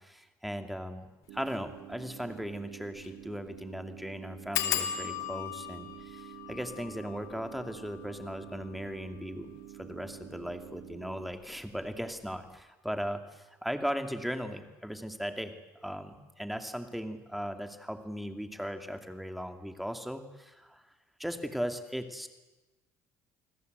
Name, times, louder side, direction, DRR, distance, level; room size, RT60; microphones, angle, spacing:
voice 1, 0.0-9.5 9.8-15.5 15.8-20.8 21.2-22.3, equal, ahead, 6 dB, 2.5 m, -38 dB
sound 1, 1.3-11.3, right 17 dB, 80° right, 1.3 m, -48 dB
sound 2, 1.4-1.6 2.0-2.1 2.3-2.4 3.0-3.2 3.5-3.6 4.5-9.8 10.5-11.0 11.3-11.7 11.9-12.0, left 11 dB, 75° left, 2.5 m, -38 dB
29.0 x 20.5 x 8.1 m, 1.1 s
cardioid pair, 120°, 6 cm